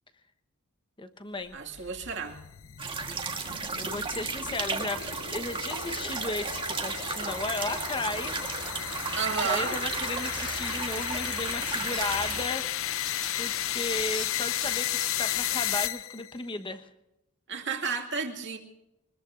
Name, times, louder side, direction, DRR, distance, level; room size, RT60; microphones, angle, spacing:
voice 1, 1.0-1.6 3.7-5.1 5.3-8.5 9.4-12.7 13.4-16.9, left 2 dB, 25° left, 9 dB, 1.1 m, -34 dB
sound 1, 1.5-16.4, left 11 dB, 65° left, 0.6 m, -34 dB
voice 2, 1.5-2.4 9.2-9.8 17.5-18.6, right 5 dB, 60° right, 2 dB, 2.3 m, -32 dB
sound 2, 2.8-12.4, right 4 dB, 25° right, 1.5 m, -34 dB
sound 3, 11.9-12.0 13.1-13.3 14.1-14.3 14.6-15.1, equal, 5° left, 1.9 m, -41 dB
24.0 x 20.5 x 2.6 m, 0.87 s
head